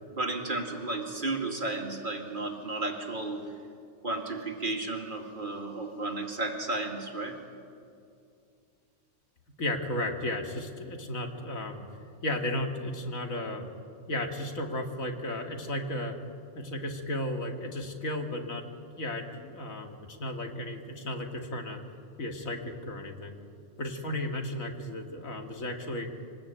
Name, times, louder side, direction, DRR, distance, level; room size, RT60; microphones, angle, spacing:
voice 1, 0.1-3.5 4.0-7.4, right 2 dB, 35° right, 2 dB, 2.5 m, -33 dB
voice 2, 9.6-11.8 12.2-13.7 14.1-16.2 16.5-18.6 19.0-21.8 22.2-23.4 23.8-26.1, left 1 dB, 75° left, 3 dB, 2.5 m, -34 dB
25.0 x 19.5 x 8.9 m, 2.5 s
omnidirectional pair, 1.4 m